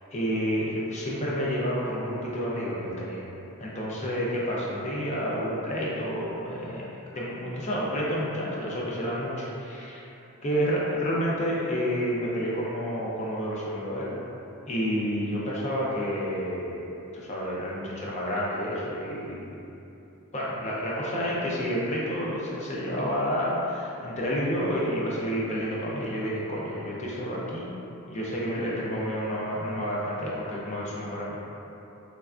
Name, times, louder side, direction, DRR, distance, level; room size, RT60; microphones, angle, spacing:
voice 1, 0.1-3.3 3.6-10.0 10.4-14.1 14.7-16.9 17.1-19.5 20.3-27.7 28.1-31.4, equal, 30° left, -6 dB, 0.5 m, -29 dB
3.2 x 2.2 x 2.4 m, 2.9 s
head